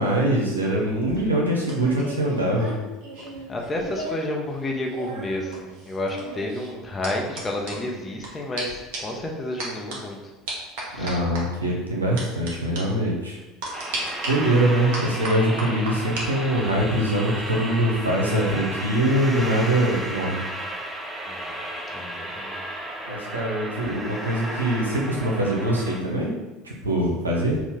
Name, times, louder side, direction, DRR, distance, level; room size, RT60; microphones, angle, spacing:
voice 1, 0.0-2.7 11.0-13.4 14.3-20.4 23.1-26.3 26.6-27.6, right 1 dB, 90° right, -2 dB, 0.7 m, -23 dB
sound 1, 0.9-4.3 4.6-8.3 8.6-8.7 8.9-9.2 9.6-10.0 10.5-11.4 12.2-12.5 12.8-12.9 13.6-14.3 14.9-16.3 16.6-16.9, right 2 dB, 60° right, 1.2 m, -35 dB
voice 2, 3.5-10.3 10.9-11.2 21.2-21.6 21.9-22.8, left 1 dB, 25° left, 0 dB, 0.9 m, -31 dB
sound 2, 13.7-26.0, right 1 dB, 10° right, 0.6 m, -33 dB
4.0 x 2.4 x 3.7 m, 1.1 s
figure-of-eight pair, 70°, 0 cm